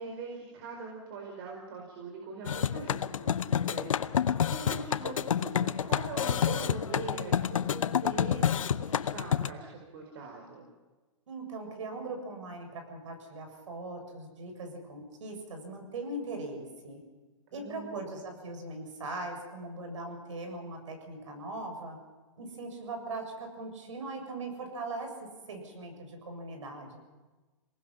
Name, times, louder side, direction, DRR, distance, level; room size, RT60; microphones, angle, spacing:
voice 1, 0.0-10.6 17.5-18.2, right 4 dB, 45° right, 0 dB, 4.8 m, -42 dB
sound 1, 2.5-9.5, left 8 dB, 80° left, 0.8 m, -29 dB
voice 2, 11.3-17.0 17.5-22.0 22.4-27.0, right 2 dB, 70° right, 4 dB, 7.2 m, -40 dB
27.0 x 19.0 x 5.8 m, 1.2 s
hypercardioid pair, 150°, 17 cm